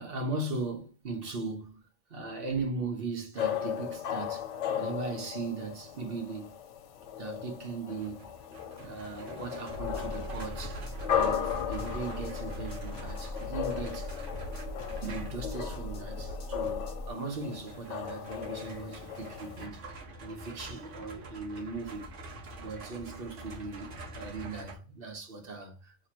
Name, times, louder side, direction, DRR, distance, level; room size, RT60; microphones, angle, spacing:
voice 1, 0.0-1.8 2.1-4.5 4.8-6.6 7.2-8.4 8.8-10.8 11.1-14.1 14.9-22.1 22.6-26.1, right 3 dB, 55° right, 1.1 m, -38 dB
sound 1, 3.4-19.7, left 9 dB, 80° left, 0.9 m, -36 dB
sound 2, 8.0-15.5 17.3-24.8, right 2 dB, 90° right, 1.3 m, -46 dB
sound 3, 9.7-17.1, left 1 dB, 50° left, 1.2 m, -40 dB
3.0 x 2.9 x 4.1 m
omnidirectional pair, 1.2 m